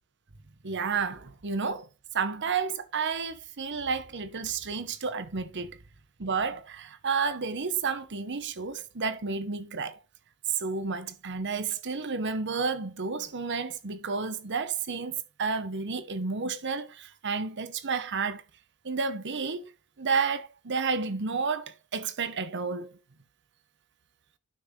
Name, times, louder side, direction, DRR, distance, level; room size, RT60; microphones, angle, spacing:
voice 1, 0.6-1.9 2.1-5.7 6.2-10.0 10.6-18.4 18.8-19.7 20.0-22.9, right 5 dB, 55° right, 1.0 m, -31 dB
12.0 x 6.0 x 3.3 m
head